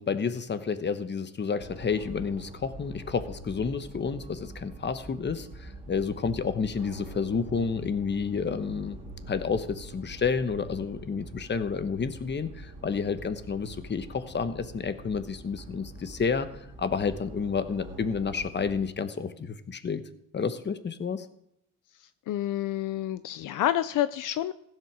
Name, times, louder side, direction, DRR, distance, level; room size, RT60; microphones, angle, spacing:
voice 1, 0.0-9.0 9.3-16.5 16.8-20.0 20.3-21.3, left 5 dB, 30° left, 11 dB, 1.1 m, -30 dB
sound 1, 1.6-18.8, right 2 dB, 20° right, 3.2 m, -45 dB
voice 2, 22.3-24.5, left 12 dB, 70° left, 14 dB, 0.6 m, -28 dB
16.0 x 7.7 x 6.2 m, 0.78 s
cardioid pair, 110°, 33 cm